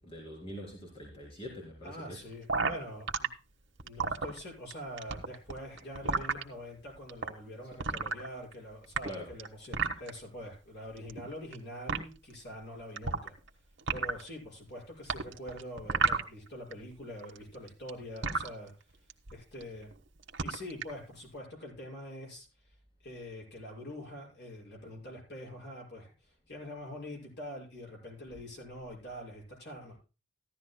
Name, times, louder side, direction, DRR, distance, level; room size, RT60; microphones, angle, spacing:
voice 1, 0.0-2.2 9.0-9.3, equal, 30° left, -2 dB, 3.7 m, -44 dB
voice 2, 1.8-3.3 3.8-13.3 13.9-19.1 19.3-19.9 20.4-22.8 23.0-30.0, equal, 60° left, -1 dB, 5.9 m, -45 dB
sound 1, 2.5-3.3 3.8-4.7 5.0-6.4 7.1-7.3 7.8-8.5 8.8-10.1 11.0-11.6 11.9-12.0 13.0-13.5 13.8-14.3 15.1-16.7 17.0-18.5 19.1-19.3 19.6-19.9 20.2-20.9, right 4 dB, 65° right, 1.3 m, -31 dB
15.0 x 12.5 x 2.2 m, 0.32 s
head